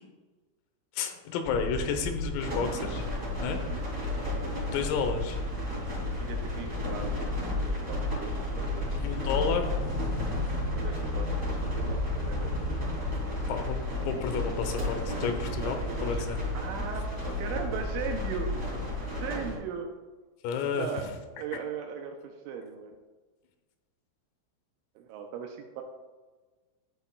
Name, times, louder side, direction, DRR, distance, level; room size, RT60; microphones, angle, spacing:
voice 1, 0.9-3.1 3.4-3.6 4.7-5.4 8.9-9.7 13.5-13.8 14.1-16.4 20.4-21.1, left 5 dB, 85° left, 6 dB, 3.6 m, -31 dB
sound 1, 1.4-19.1, left 2 dB, 50° left, 0.8 m, -35 dB
sound 2, 2.4-19.6, left 1 dB, 25° right, 1.4 m, -34 dB
voice 2, 3.5-3.9 6.2-8.9 9.4-9.6 10.7-12.5 13.2-13.3 15.6-16.2 16.5-19.9 20.7-21.0 21.3-23.0 25.0-25.8, right 7 dB, 85° right, 3 dB, 2.8 m, -39 dB
12.5 x 7.8 x 2.3 m, 1.3 s
omnidirectional pair, 5.9 m